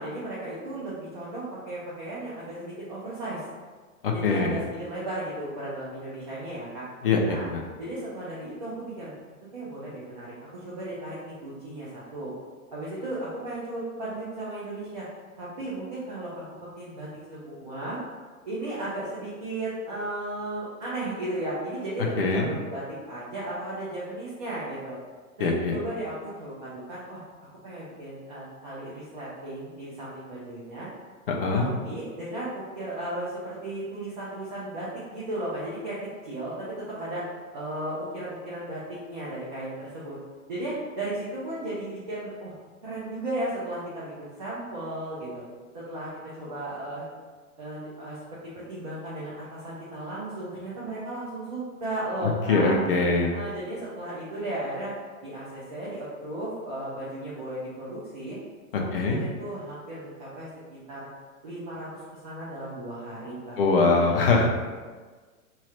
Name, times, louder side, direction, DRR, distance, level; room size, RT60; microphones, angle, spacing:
voice 1, 0.0-3.4 4.1-6.9 7.3-7.5 7.8-9.1 9.5-10.3 10.6-12.3 12.7-15.0 15.4-16.4 16.8-18.0 18.4-25.0 25.4-27.2 27.6-30.9 31.5-36.0 36.2-37.2 37.5-40.2 40.5-42.5 42.8-45.4 45.7-47.0 47.6-48.2 48.7-52.7 53.2-54.9 55.2-58.4 58.7-61.1 61.4-64.4, right 1 dB, 30° right, -9 dB, 0.5 m, -35 dB
voice 2, 4.0-4.6 7.0-7.6 22.2-22.5 25.4-25.8 31.3-31.7 52.2-53.3 58.7-59.2 63.6-64.5, left 3 dB, 40° left, 1 dB, 0.5 m, -23 dB
3.1 x 2.4 x 4.2 m, 1.4 s
hypercardioid pair, 170°, 43 cm